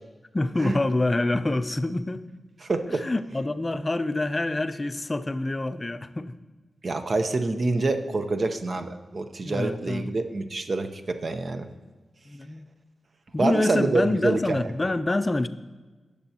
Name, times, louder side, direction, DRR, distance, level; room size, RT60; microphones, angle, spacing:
voice 1, 0.3-2.3 2.9-6.3 9.4-10.1 12.3-12.7 13.3-15.5, left 2 dB, 25° left, 11 dB, 0.5 m, -26 dB
voice 2, 2.6-3.0 6.8-11.7 13.4-14.7, right 3 dB, 50° right, 8 dB, 0.7 m, -26 dB
18.5 x 6.8 x 2.9 m, 1.3 s
wide cardioid pair, 100°, 0 cm